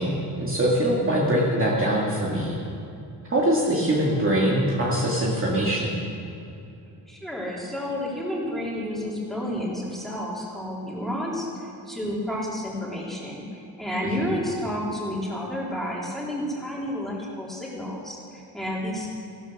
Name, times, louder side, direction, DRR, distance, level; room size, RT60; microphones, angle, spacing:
voice 1, 0.0-2.6 3.3-6.0 14.2-14.3, right 1 dB, 30° right, -4 dB, 2.2 m, -23 dB
voice 2, 7.1-19.1, left 1 dB, ahead, -5 dB, 3.7 m, -31 dB
15.0 x 13.0 x 6.1 m, 2.7 s
cardioid pair, 135°, 42 cm